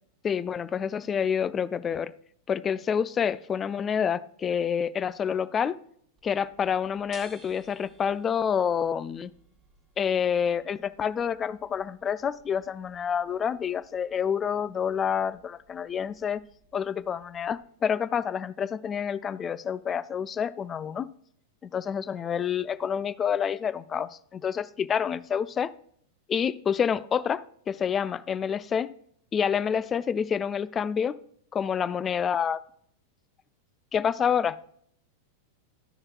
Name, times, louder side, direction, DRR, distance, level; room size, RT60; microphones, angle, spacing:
voice 1, 0.2-2.1 2.5-5.8 6.2-9.3 10.0-16.4 16.7-21.1 21.6-25.7 26.3-28.9 29.3-31.2 31.5-32.6 33.9-34.7, left 7 dB, 25° left, 16 dB, 0.4 m, -28 dB
sound 1, 6.2-17.6, right 4 dB, 20° right, 2.0 m, -59 dB
13.0 x 6.4 x 2.2 m, 0.65 s
figure-of-eight pair, 90°, 0 cm